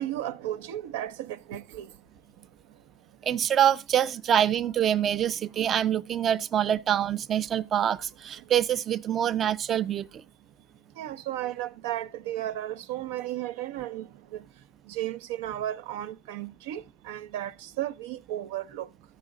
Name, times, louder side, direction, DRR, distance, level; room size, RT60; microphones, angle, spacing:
voice 1, 0.0-1.9 11.0-14.4 14.9-18.9, right 13 dB, 85° right, 0.6 m, -34 dB
voice 2, 3.2-10.2, right 10 dB, 35° right, 0.4 m, -25 dB
14.5 x 4.9 x 3.7 m
supercardioid pair, 135°, 0 cm